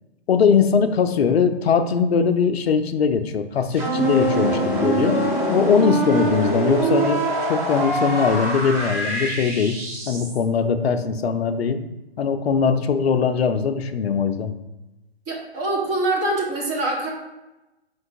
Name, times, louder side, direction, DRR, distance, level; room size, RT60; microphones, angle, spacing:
voice 1, 0.3-5.2 5.5-7.2 7.5-9.8 10.1-11.8 12.2-14.5, left 6 dB, 70° left, 9 dB, 0.5 m, -20 dB
sound 1, 3.7-10.4, right 2 dB, 35° right, 1.3 m, -24 dB
voice 2, 15.3-17.1, right 2 dB, 20° right, -1 dB, 0.5 m, -24 dB
4.5 x 3.8 x 2.6 m, 1.0 s
figure-of-eight pair, 120°, 32 cm